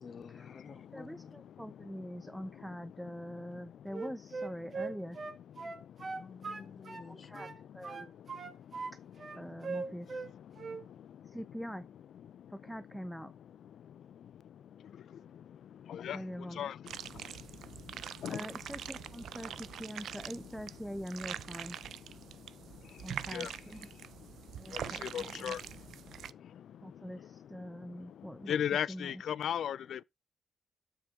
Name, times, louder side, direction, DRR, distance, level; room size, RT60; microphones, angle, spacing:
voice 1, 0.0-1.3 6.1-7.5, left 5 dB, 45° left, 0.8 m, -51 dB
voice 2, 0.9-5.2 7.1-8.1 9.4-10.2 11.2-11.9 12.5-13.3 16.1-16.7 18.3-21.8 23.0-23.9 24.6-25.6 26.8-28.6 28.9-29.2, equal, ahead, 0.4 m, -44 dB
Wind instrument woodwind instrument, 3.9-7.1 7.4-8.9 9.2-10.3 10.6-10.8, right 4 dB, 45° right, 1.1 m, -40 dB
sound 1, 16.9-26.3, right 10 dB, 85° right, 0.3 m, -44 dB
voice 3, 24.7-25.6 28.5-30.0, left 9 dB, 80° left, 0.3 m, -35 dB
7.3 x 5.7 x 3.6 m
cardioid pair, 110°, 0 cm